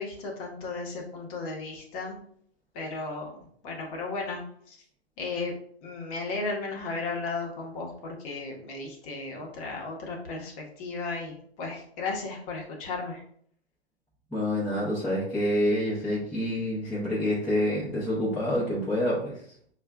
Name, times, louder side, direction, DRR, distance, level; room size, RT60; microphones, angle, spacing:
voice 1, 0.0-2.2 2.7-3.3 3.6-4.8 5.2-5.5 5.8-13.2, left 3 dB, 30° left, 0 dB, 1.0 m, -35 dB
voice 2, 14.3-19.4, left 1 dB, 5° left, -9 dB, 0.8 m, -27 dB
5.2 x 2.4 x 2.3 m, 0.62 s
figure-of-eight pair, 120°, 33 cm